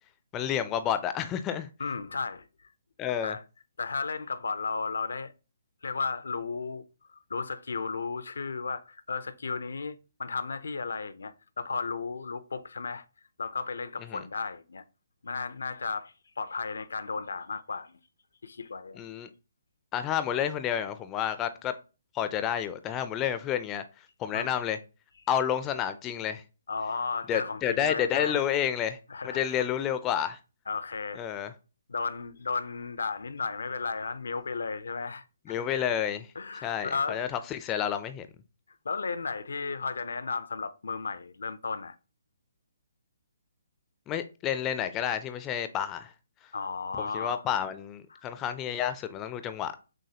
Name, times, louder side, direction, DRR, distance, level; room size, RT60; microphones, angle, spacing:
voice 1, 0.3-1.7 3.0-3.4 14.1-14.2 18.9-19.3 19.9-21.7 22.1-23.8 24.2-24.8 25.3-26.4 27.3-29.0 29.2-30.4 31.2-31.5 35.5-36.3 36.6-38.3 44.1-46.1 47.0-49.7, left 9 dB, 20° left, 0.3 m, -30 dB
voice 2, 1.8-2.7 3.2-3.4 3.8-5.3 5.8-6.8 7.1-13.0 13.4-14.8 15.2-18.0 18.4-19.0 24.3-24.6 26.7-28.4 29.1-29.7 30.7-31.4 31.9-35.9 36.4-37.2 38.8-42.0 46.5-47.4 48.1-48.2, left 4 dB, 80° left, 0.5 m, -34 dB
6.2 x 2.2 x 2.8 m
hypercardioid pair, 150°, 0 cm